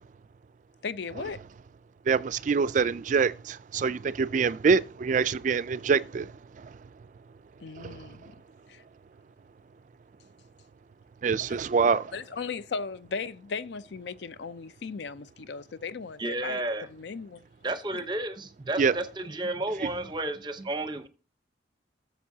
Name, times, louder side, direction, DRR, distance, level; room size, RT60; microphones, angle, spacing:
voice 1, 0.8-1.4 7.6-8.2 8.7-8.8 12.1-16.6 16.9-17.4 17.9-18.1, left 5 dB, 65° left, 0.5 m, -37 dB
voice 2, 2.1-6.8 7.8-8.3 11.2-12.1 18.8-19.0, right 5 dB, 40° right, 0.3 m, -26 dB
voice 3, 16.2-16.9 17.6-21.1, right 2 dB, 25° right, 0.8 m, -32 dB
13.0 x 7.1 x 2.8 m
head